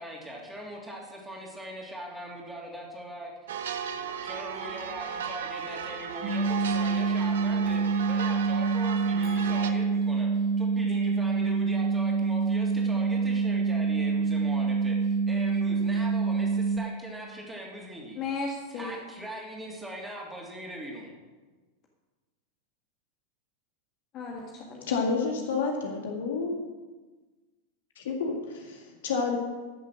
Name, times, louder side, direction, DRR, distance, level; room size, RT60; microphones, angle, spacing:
voice 1, 0.0-3.3 4.2-10.3 10.6-14.9 15.3-18.2 18.7-21.1, right 1 dB, 5° right, 3.2 m, -41 dB
sound 1, 3.5-9.7, right 8 dB, 60° right, 0.9 m, -35 dB
sound 2, 6.2-16.8, right 5 dB, 35° right, 2.6 m, -26 dB
voice 2, 9.2-10.3 18.1-19.0 24.1-25.0, left 4 dB, 35° left, 1.7 m, -37 dB
voice 3, 24.9-26.5 28.0-29.4, left 4 dB, 60° left, 2.0 m, -29 dB
14.0 x 7.4 x 6.3 m
figure-of-eight pair, 90°, 0 cm